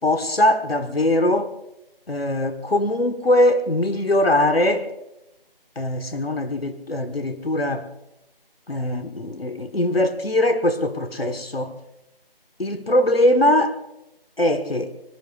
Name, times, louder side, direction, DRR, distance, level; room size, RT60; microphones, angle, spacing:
voice 1, 0.0-1.5 2.1-4.9 5.7-7.9 8.7-11.7 12.6-13.8 14.4-14.9, left 1 dB, 80° left, 1.6 m, -21 dB
26.0 x 21.0 x 2.6 m
figure-of-eight pair, 165°, 29 cm